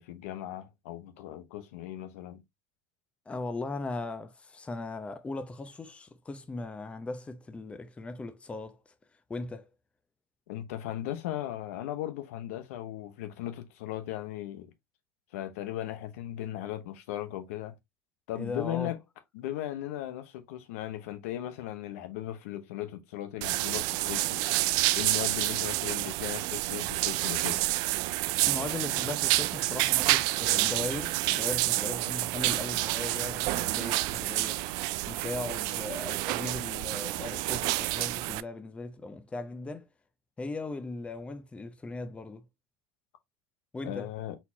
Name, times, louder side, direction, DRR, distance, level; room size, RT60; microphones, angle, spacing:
voice 1, 0.0-2.4 10.5-14.7 15.3-17.8 18.3-19.0 19.3-24.4 25.0-27.6 43.8-44.4, left 13 dB, 75° left, 0.9 m, -37 dB
voice 2, 3.3-8.8 9.3-9.7 18.4-18.9 28.5-34.6 35.1-39.9 40.4-42.4 43.7-44.1, left 3 dB, 15° left, 0.7 m, -38 dB
sound 1, 23.4-38.4, right 19 dB, 60° right, 0.3 m, -29 dB
4.2 x 4.0 x 2.7 m
supercardioid pair, 105°, 8 cm